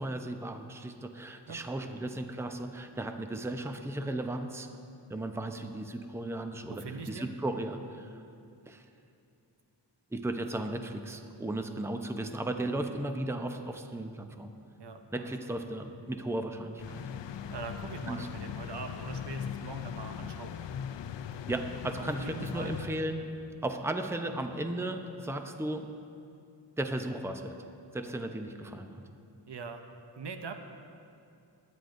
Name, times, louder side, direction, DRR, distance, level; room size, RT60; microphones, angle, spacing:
voice 1, 0.0-4.7 5.1-8.2 8.7-8.8 10.1-14.5 15.1-17.0 18.1-18.3 21.5-23.2 23.6-25.9 26.8-27.6 27.9-29.0, right 1 dB, 5° right, 6 dB, 0.6 m, -35 dB
voice 2, 1.5-2.0 6.7-7.3 14.8-15.5 17.5-20.5 22.0-22.8 29.5-29.8 30.2-30.5, right 5 dB, 70° right, 6 dB, 0.8 m, -42 dB
sound 1, 16.8-23.5, left 8 dB, 80° left, 0.5 m, -40 dB
20.5 x 9.5 x 2.6 m, 2.5 s
wide cardioid pair, 70°, 43 cm